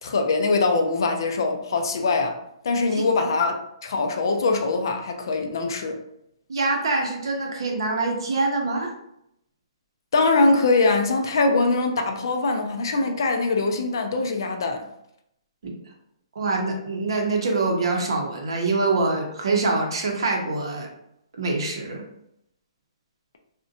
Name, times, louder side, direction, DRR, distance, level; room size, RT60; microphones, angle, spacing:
voice 1, 0.0-2.4 2.6-6.0 10.1-14.9, left 3 dB, 45° left, 0.3 m, -22 dB
voice 2, 6.5-8.9 15.6-15.7 16.4-20.9 21.3-22.0, right 3 dB, 55° right, 0.6 m, -25 dB
2.5 x 2.1 x 2.6 m
hypercardioid pair, 180°, 3 cm